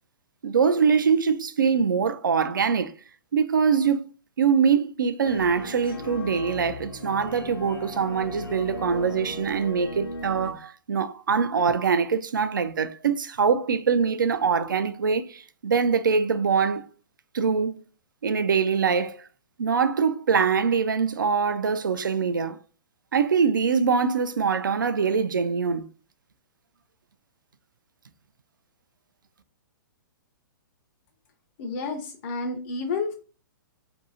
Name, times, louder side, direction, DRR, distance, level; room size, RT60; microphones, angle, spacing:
voice 1, 0.4-2.9 3.3-4.0 4.4-16.9 17.3-17.7 18.2-19.2 19.6-22.6 23.1-25.9, right 6 dB, 70° right, 0.4 m, -23 dB
sound 1, 5.2-10.5, left 1 dB, 80° left, 0.8 m, -37 dB
voice 2, 31.6-33.1, left 4 dB, 40° left, 0.5 m, -30 dB
2.6 x 2.6 x 2.7 m
figure-of-eight pair, 115°, 11 cm